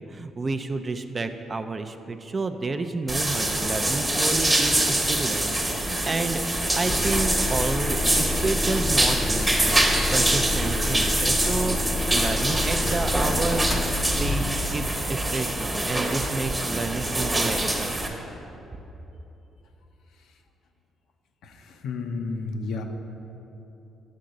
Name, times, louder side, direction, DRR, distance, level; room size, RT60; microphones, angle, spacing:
voice 1, 0.0-6.4 6.8-11.8 12.1-13.7 14.2-18.0, right 3 dB, 30° right, 8 dB, 0.4 m, -30 dB
sound 1, 3.1-18.1, right 1 dB, 15° right, 1.0 m, -25 dB
sound 2, 6.9-14.9, left 2 dB, 30° left, 0.5 m, -29 dB
voice 2, 21.4-22.8, left 3 dB, 80° left, 4 dB, 0.6 m, -32 dB
8.4 x 3.8 x 6.4 m, 3.0 s
cardioid pair, 90°, 0 cm